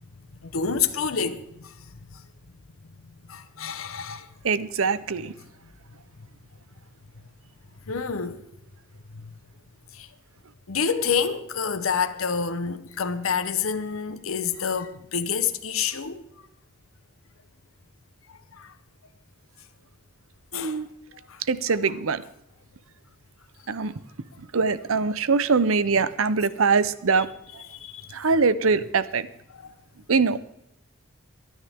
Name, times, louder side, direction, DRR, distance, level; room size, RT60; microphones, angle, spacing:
voice 1, 0.4-1.7 2.1-2.2 3.3-4.3 7.9-8.4 9.1-9.3 9.9-10.1 10.7-16.2 18.6-18.7 20.5-20.8 21.3-21.4 27.7-28.1 29.6-29.7, left 6 dB, 90° left, 0.9 m, -28 dB
voice 2, 4.4-5.3 20.5-20.9 21.5-22.2 23.7-23.9 24.4-27.3 28.1-29.3 30.1-30.4, right 4 dB, 90° right, 0.7 m, -23 dB
24.5 x 9.7 x 3.6 m
head